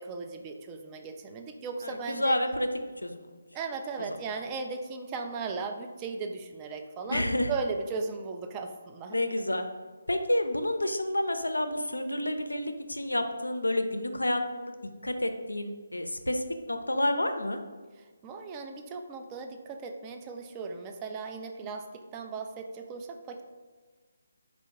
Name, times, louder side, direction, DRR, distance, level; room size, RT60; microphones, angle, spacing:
voice 1, 0.0-2.4 3.5-9.2 18.2-23.4, right 4 dB, 20° right, 4 dB, 0.3 m, -37 dB
voice 2, 1.8-2.7 3.0-3.2 4.1-4.2 7.1-7.5 9.1-9.7 10.1-14.7 15.0-17.6, left 1 dB, 75° left, 7 dB, 0.4 m, -29 dB
4.4 x 2.4 x 3.5 m, 1.4 s
figure-of-eight pair, 145°, 0 cm